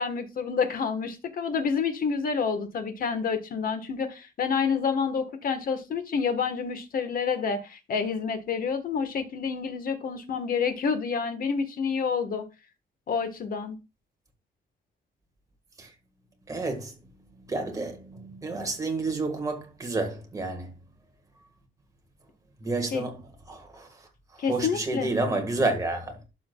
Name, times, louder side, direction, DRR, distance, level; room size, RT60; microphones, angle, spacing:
voice 1, 0.0-12.4 13.1-13.8 22.9-23.0 24.4-25.1, left 6 dB, 50° left, 1.2 m, -28 dB
voice 2, 16.5-16.9 17.4-20.7 22.6-23.2 23.5-23.9 24.5-26.2, right 2 dB, 20° right, 1.6 m, -30 dB
11.5 x 6.2 x 2.3 m
wide cardioid pair, 165°, 18 cm